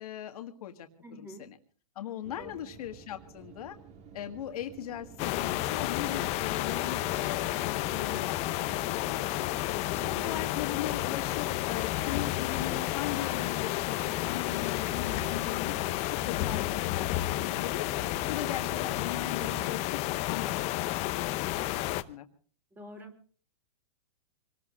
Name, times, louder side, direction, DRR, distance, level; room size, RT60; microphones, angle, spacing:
voice 1, 0.0-1.6 2.0-3.8 4.1-9.6 10.1-15.8 16.1-22.3, left 11 dB, 65° left, 6 dB, 1.8 m, -39 dB
voice 2, 1.0-1.5 2.4-2.5 9.9-10.2 15.0-15.4 19.4-19.7 22.7-23.2, right 1 dB, 10° right, 6 dB, 3.0 m, -46 dB
sound 1, 2.2-19.7, right 6 dB, 30° right, 2.1 m, -51 dB
sound 2, 5.2-22.0, left 16 dB, 30° left, 0.8 m, -31 dB
25.5 x 19.5 x 2.5 m, 0.40 s
hypercardioid pair, 130°, 20 cm